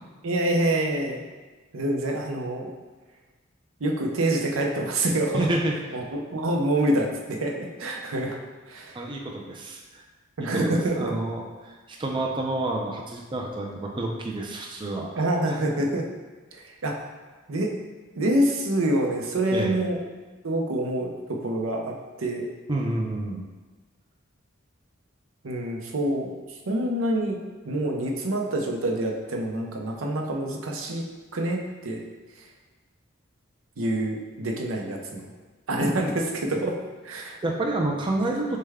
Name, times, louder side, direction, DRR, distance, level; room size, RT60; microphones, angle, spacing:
voice 1, 0.2-1.2 1.7-2.7 3.8-5.5 5.9-8.4 8.7-9.0 10.4-11.1 15.1-16.1 16.5-16.9 17.5-17.7 18.1-20.0 20.4-22.5 25.4-27.4 27.7-31.0 31.3-32.0 32.4-32.5 33.8-35.3 35.7-36.8 37.0-37.4, right 1 dB, 85° right, 1 dB, 0.6 m, -26 dB
voice 2, 5.3-5.8 8.9-10.0 10.4-15.1 15.5-15.6 19.5-19.8 22.7-23.5 37.4-38.6, right 2 dB, 25° right, 0 dB, 0.4 m, -29 dB
6.5 x 2.2 x 3.5 m, 1.3 s
head